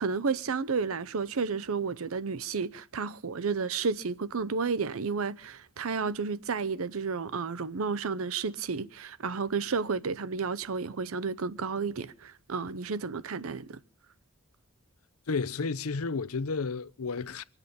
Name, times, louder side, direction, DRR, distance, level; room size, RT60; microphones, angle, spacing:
voice 1, 0.0-13.8, right 5 dB, 75° right, 0.7 m, -32 dB
voice 2, 15.3-17.4, left 4 dB, 85° left, 0.7 m, -32 dB
24.0 x 8.2 x 6.9 m
head